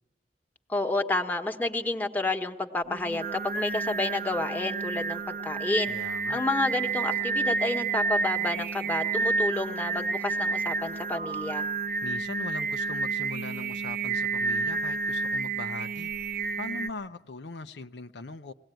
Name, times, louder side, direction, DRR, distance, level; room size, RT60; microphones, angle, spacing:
voice 1, 0.7-5.9 6.3-11.6, left 2 dB, 10° left, 1.3 m, -30 dB
Singing, 2.9-16.9, right 4 dB, 55° right, 0.7 m, -30 dB
voice 2, 5.9-6.4 12.0-16.1 16.6-18.5, left 3 dB, 80° left, 0.7 m, -40 dB
21.5 x 18.0 x 9.1 m
head